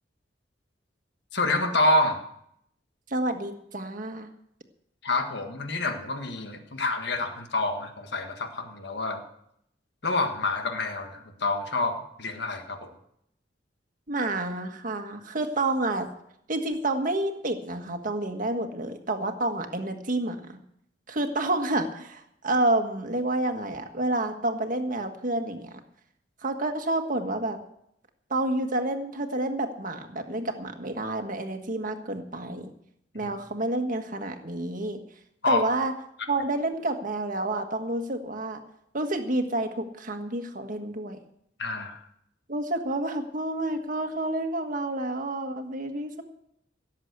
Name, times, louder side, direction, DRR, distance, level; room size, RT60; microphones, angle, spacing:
voice 1, 1.3-2.2 5.0-9.2 10.0-12.9 33.2-33.3 35.4-35.6 41.6-42.0, left 2 dB, 65° left, 6 dB, 1.7 m, -27 dB
voice 2, 3.1-4.3 14.1-16.1 16.5-20.6 21.1-25.8 26.4-27.6 28.3-32.7 33.1-35.0 35.5-35.9 36.3-38.6 38.9-41.2 42.5-46.2, right 2 dB, 45° right, 5 dB, 1.6 m, -29 dB
17.0 x 7.4 x 8.1 m, 0.74 s
head